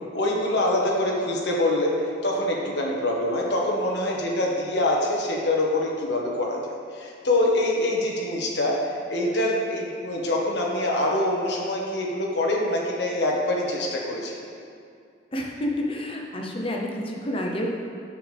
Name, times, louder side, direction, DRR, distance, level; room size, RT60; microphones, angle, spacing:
voice 1, 0.1-1.9 2.2-6.6 6.9-14.4, left 1 dB, 65° left, -2 dB, 1.6 m, -25 dB
voice 2, 15.3-17.7, left 1 dB, 30° left, 0 dB, 0.8 m, -29 dB
10.0 x 7.2 x 3.5 m, 2.4 s
head